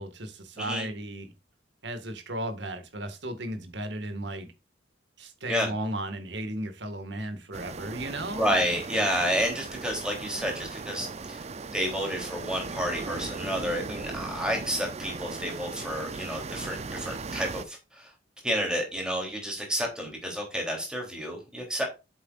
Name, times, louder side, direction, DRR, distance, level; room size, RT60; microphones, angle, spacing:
voice 1, 0.0-1.3 1.8-4.5 5.2-8.5, right 1 dB, 70° right, 1.9 m, -35 dB
voice 2, 0.6-0.9 5.5-5.7 8.4-11.4 11.7-18.1 18.4-21.8, equal, 5° right, 3.3 m, -30 dB
sound 1, 7.5-17.6, right 4 dB, 35° right, 0.5 m, -38 dB
8.1 x 8.0 x 2.5 m
head